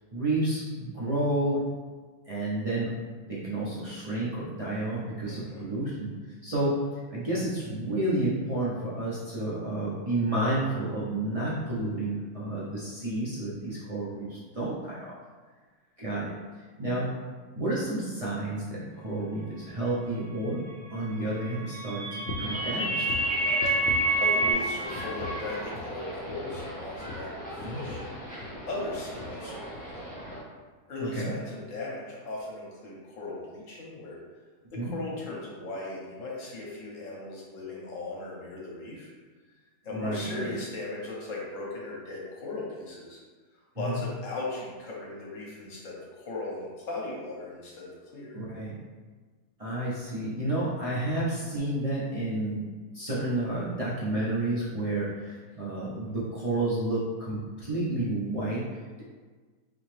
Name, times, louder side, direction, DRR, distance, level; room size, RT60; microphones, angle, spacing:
voice 1, 0.1-1.6 2.3-2.9 3.3-6.1 6.4-6.8 7.1-15.2 16.0-16.3 16.8-17.1 17.5-20.6 20.9-23.0 27.6-27.8 31.0-31.3 34.8-35.0 39.9-40.5 43.8-44.0 48.3-48.8 49.6-52.7 52.9-58.7, right 1 dB, 55° right, -8 dB, 0.4 m, -30 dB
voice 2, 5.2-5.6 23.8-30.1 30.9-34.2 34.7-39.1 39.8-43.2 43.7-48.4, left 2 dB, 60° left, -4 dB, 1.2 m, -38 dB
sound 1, 21.4-24.5, right 2 dB, 80° right, 2.0 m, -27 dB
sound 2, 22.3-22.6 23.0-24.7 24.9-25.5 25.7-26.0 26.3-28.7 28.9-29.4 29.7-29.9 30.3-30.4, left 3 dB, 75° left, 1.0 m, -41 dB
sound 3, 22.4-30.4, equal, 10° left, 0.6 m, -39 dB
3.9 x 2.9 x 3.2 m, 1.4 s
omnidirectional pair, 1.7 m